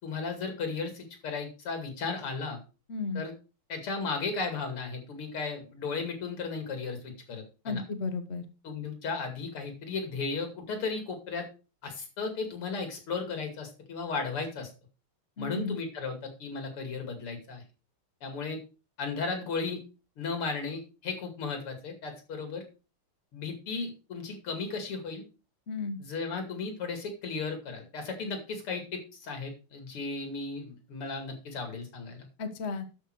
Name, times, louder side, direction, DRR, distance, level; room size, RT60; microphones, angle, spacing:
voice 1, 0.0-2.6 3.1-3.3 3.7-7.8 8.6-11.5 11.8-14.7 15.4-17.6 18.2-18.6 19.0-19.8 20.2-22.6 23.3-25.2 26.0-32.3, left 4 dB, 85° left, 5 dB, 3.3 m, -35 dB
voice 2, 2.9-3.2 7.6-8.4 15.4-15.8 25.7-26.0 32.4-32.8, left 4 dB, 40° left, 7 dB, 1.2 m, -33 dB
12.0 x 5.6 x 4.6 m, 0.33 s
omnidirectional pair, 2.4 m